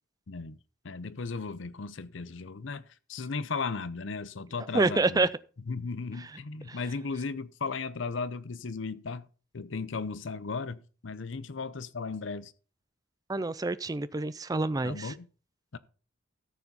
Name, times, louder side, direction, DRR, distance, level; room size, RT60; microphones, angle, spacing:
voice 1, 0.3-0.6 0.8-2.8 3.1-5.3 5.7-9.3 9.5-12.5 14.8-15.3 15.7-15.8, left 4 dB, 65° left, 0.7 m, -36 dB
voice 2, 4.7-5.3 6.2-6.3 6.7-6.8 13.3-15.1, right 3 dB, 20° right, 0.4 m, -27 dB
13.5 x 7.1 x 4.2 m
head